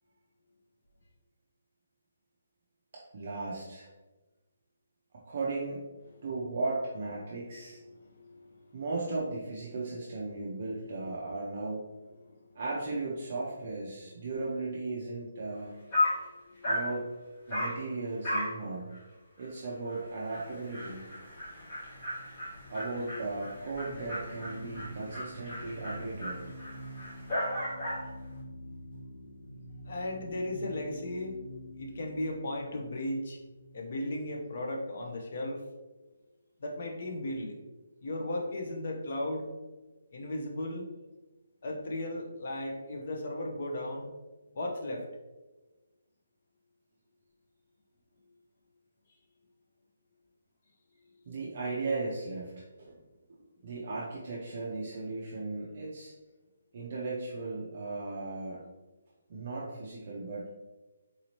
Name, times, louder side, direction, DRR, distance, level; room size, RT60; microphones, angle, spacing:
voice 1, 2.9-3.9 5.3-5.8 6.2-7.8 8.7-11.8 12.6-15.7 16.6-17.1 17.5-18.9 19.4-21.0 22.7-26.4 28.9-29.0 51.3-53.0 53.3-56.1 56.7-58.7 59.3-60.4, right 3 dB, 35° right, -5 dB, 0.5 m, -36 dB
voice 2, 8.0-8.8 12.2-12.4 14.2-14.3 16.3-16.6 29.8-31.4 31.8-33.4 33.7-35.6 36.6-37.6 38.0-39.5 40.1-40.9 41.6-44.1 44.5-45.1, left 1 dB, 35° left, 1 dB, 0.6 m, -36 dB
Dog, 15.5-15.6 15.9-16.2 16.6-16.9 17.5-17.8 18.2-18.6 18.9-19.0 19.4-19.5 19.9-20.0 20.3-28.1, left 1 dB, 20° left, 1.2 m, -35 dB
sound 1, 21.4-34.6, equal, 80° left, 1.3 m, -47 dB
4.0 x 2.7 x 3.0 m, 1.2 s
hypercardioid pair, 180°, 0 cm